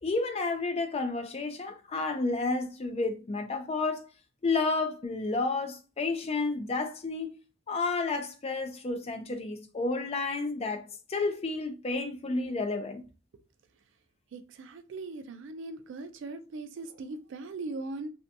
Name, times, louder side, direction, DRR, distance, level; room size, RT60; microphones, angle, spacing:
voice 1, 0.0-4.1 4.4-7.3 7.7-10.8 11.1-13.0, left 3 dB, 30° left, 0.3 m, -31 dB
voice 2, 14.3-18.1, right 3 dB, 60° right, 0.3 m, -39 dB
2.6 x 2.2 x 2.5 m
head